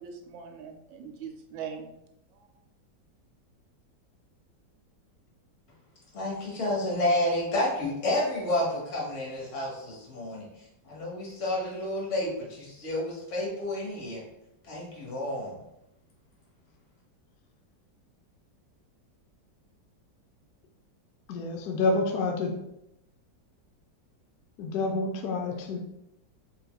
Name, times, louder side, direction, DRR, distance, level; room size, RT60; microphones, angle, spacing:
voice 1, 0.0-1.9 2.3-2.5, right 7 dB, 85° right, 4 dB, 1.3 m, -41 dB
voice 2, 6.1-10.4 10.8-14.2 14.6-15.5, left 1 dB, 45° left, -3 dB, 1.4 m, -30 dB
voice 3, 21.3-22.6 24.6-25.8, left 3 dB, 70° left, 3 dB, 0.9 m, -28 dB
4.1 x 3.3 x 2.3 m, 0.85 s
omnidirectional pair, 1.9 m